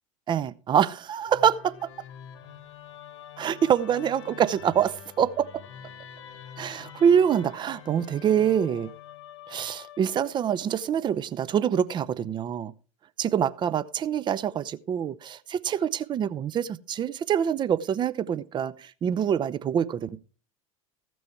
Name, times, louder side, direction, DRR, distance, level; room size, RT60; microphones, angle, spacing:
voice 1, 0.3-1.9 3.4-5.6 6.6-8.9 9.5-12.7 13.2-20.2, right 8 dB, 25° right, 0.6 m, -25 dB
Musical instrument, 1.3-10.5, left 9 dB, 60° left, 1.3 m, -46 dB
15.0 x 6.2 x 4.5 m
figure-of-eight pair, 80°, 18 cm